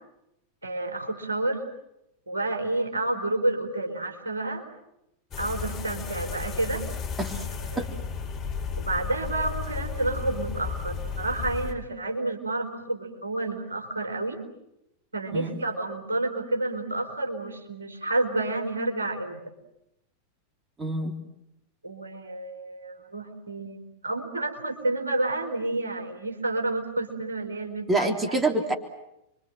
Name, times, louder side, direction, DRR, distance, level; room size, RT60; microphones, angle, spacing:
voice 1, 0.6-1.6 2.3-4.6 5.4-6.8 7.7-7.9 8.8-14.4 15.1-19.4 21.8-28.4, right 2 dB, 75° right, 3 dB, 4.3 m, -30 dB
sound 1, 5.3-11.7, left 6 dB, 25° left, 4.1 m, -33 dB
voice 2, 20.8-21.2 27.9-28.7, right 2 dB, 15° right, 3 dB, 3.4 m, -26 dB
29.5 x 24.0 x 7.8 m, 0.86 s
figure-of-eight pair, 90°, 0 cm